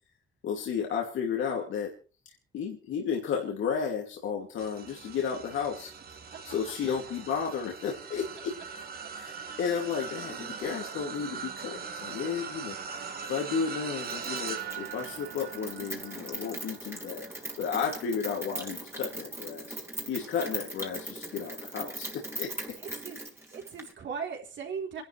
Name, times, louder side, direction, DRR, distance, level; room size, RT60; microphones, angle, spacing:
voice 1, 0.4-1.9 2.5-5.9 6.4-8.5 9.1-17.2 17.6-19.7 20.1-22.8, left 6 dB, 80° left, 0 dB, 2.7 m, -33 dB
sound 1, 4.6-20.1 20.6-20.9 22.1-22.2, right 6 dB, 50° right, 1.6 m, -41 dB
Rain, 14.0-23.9, right 1 dB, 15° right, 2.8 m, -40 dB
voice 2, 22.7-25.0, right 6 dB, 70° right, 1 dB, 3.7 m, -38 dB
27.5 x 11.5 x 3.3 m, 0.36 s
cardioid pair, 90°, 20 cm